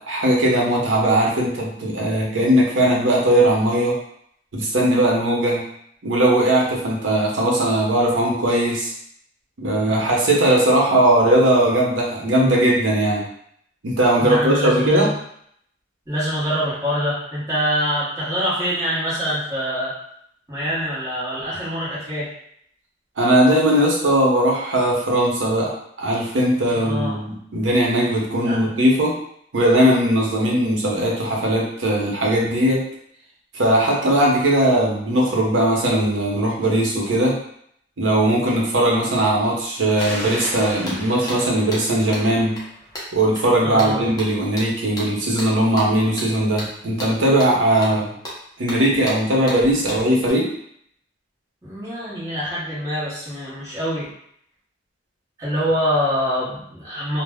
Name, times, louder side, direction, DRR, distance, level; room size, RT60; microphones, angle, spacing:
voice 1, 0.1-3.9 4.5-5.6 6.0-8.9 9.6-13.2 13.8-15.1 23.2-25.7 26.0-29.1 29.5-32.8 33.5-37.4 38.0-42.6 43.1-48.1 48.6-50.5, right 1 dB, 85° right, -3 dB, 0.7 m, -19 dB
voice 2, 14.2-15.1 16.1-19.9 20.5-22.3 26.7-27.2 28.4-28.6 43.6-44.1 51.6-54.1 55.4-57.2, equal, 15° right, -11 dB, 0.8 m, -25 dB
sound 1, 39.6-39.7 40.0-50.3, equal, 20° left, 0.6 m, -35 dB
sound 2, 40.0-43.3, equal, 45° left, 0.9 m, -36 dB
2.0 x 2.0 x 3.4 m, 0.69 s
head